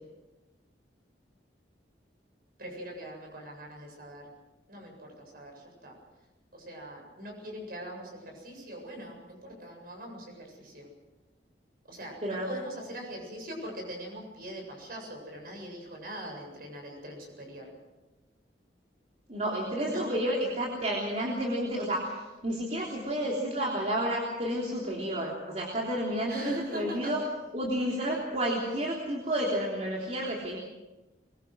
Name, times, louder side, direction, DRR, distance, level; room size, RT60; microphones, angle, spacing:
voice 1, 2.6-4.3 4.7-6.0 6.5-10.9 11.8-17.7 19.8-20.1 26.3-27.1, equal, 55° right, 1 dB, 7.8 m, -42 dB
voice 2, 12.2-12.6 19.3-27.2 27.5-30.6, right 1 dB, 40° right, -2 dB, 3.4 m, -31 dB
23.0 x 23.0 x 6.3 m, 1.1 s
head